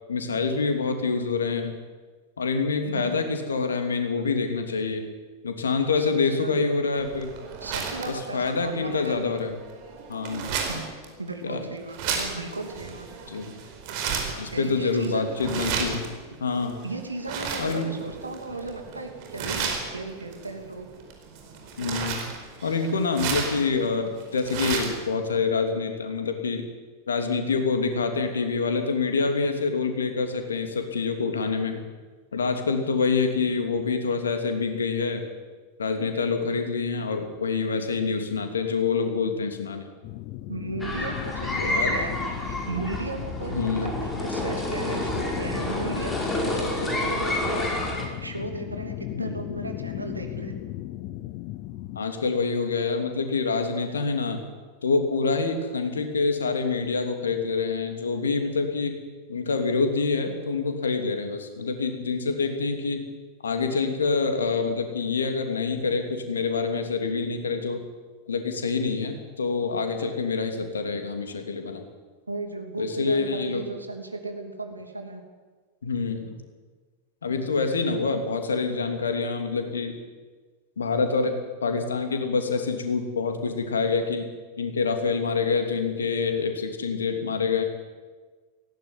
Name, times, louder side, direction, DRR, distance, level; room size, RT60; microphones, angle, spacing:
voice 1, 0.1-1.7 2.4-5.1 5.4-7.3 8.1-9.5 10.1-10.5 11.4-11.6 13.3-13.5 14.4-16.1 16.4-16.8 17.6-17.9 21.8-22.2 22.6-26.6 27.1-31.8 32.3-35.2 35.8-39.9 41.6-42.0 43.5-43.9 49.1-49.3 51.9-54.4 54.8-59.0 59.3-63.0 63.4-67.8 68.3-71.8 72.8-73.7 75.8-76.4 77.2-79.9 80.8-84.3 84.6-87.6, left 4 dB, 70° left, 6 dB, 2.9 m, -26 dB
voice 2, 2.8-3.2 6.0-6.5 7.6-9.2 10.7-10.9 11.2-13.1 14.5-15.2 16.8-20.9 40.5-47.7 48.2-50.5 72.3-75.2, right 3 dB, 80° right, 5 dB, 2.8 m, -35 dB
sound 1, 7.0-25.1, right 6 dB, 45° right, 4.7 m, -34 dB
sound 2, 40.0-52.0, left 16 dB, 45° left, 0.8 m, -36 dB
sound 3, 40.8-48.0, left 1 dB, 10° left, 5.5 m, -29 dB
18.0 x 16.5 x 9.8 m, 1.4 s
figure-of-eight pair, 90°, 0 cm